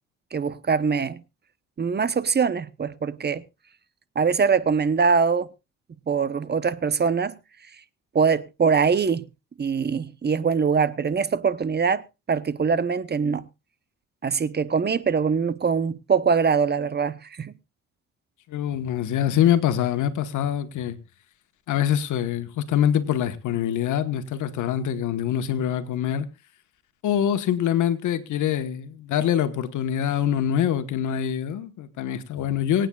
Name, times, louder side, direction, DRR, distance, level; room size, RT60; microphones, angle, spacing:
voice 1, 0.3-1.2 1.8-3.4 4.1-5.5 6.1-7.4 8.1-9.2 9.6-13.5 14.2-17.5, right 5 dB, 35° right, 0.9 m, -23 dB
voice 2, 18.5-21.0 21.7-26.3 27.0-32.9, left 10 dB, 80° left, 1.4 m, -24 dB
25.0 x 9.1 x 2.4 m
cardioid pair, 90°, 30 cm